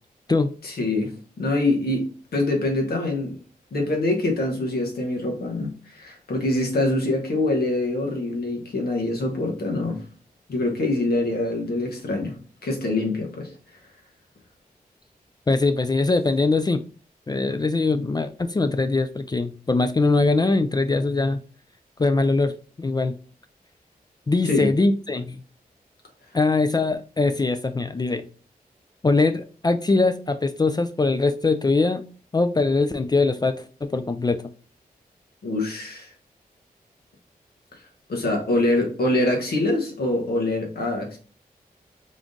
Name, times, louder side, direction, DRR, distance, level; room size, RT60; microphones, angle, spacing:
voice 1, 0.6-1.1 1.4-2.0 2.3-3.4 3.7-10.0 10.5-12.3 12.6-13.5 24.4-24.7 35.4-36.1 38.1-41.2, left 2 dB, 80° left, 1.1 m, -24 dB
voice 2, 15.5-16.8 17.3-21.4 22.0-23.2 24.3-25.4 26.3-28.3 29.0-32.1 32.3-34.4, left 3 dB, 25° left, 0.3 m, -22 dB
3.6 x 2.5 x 3.6 m
cardioid pair, 50°, 16 cm